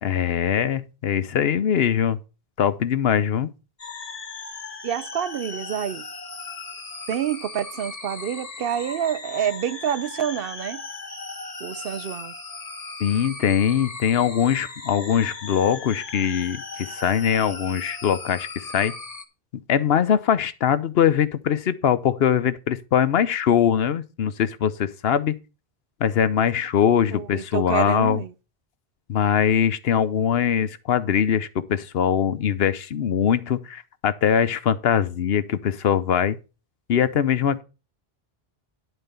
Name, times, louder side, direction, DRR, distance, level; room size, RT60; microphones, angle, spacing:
voice 1, 0.0-2.2 2.6-3.5 13.0-18.9 19.7-25.4 26.0-28.2 29.1-36.4 36.9-37.6, left 8 dB, 70° left, 0.9 m, -22 dB
sound 1, 3.8-19.3, left 3 dB, 40° left, 1.1 m, -37 dB
voice 2, 4.8-6.1 7.1-10.8 11.6-12.3 27.1-28.3, right 9 dB, 65° right, 0.8 m, -28 dB
11.0 x 4.4 x 6.7 m
omnidirectional pair, 1.1 m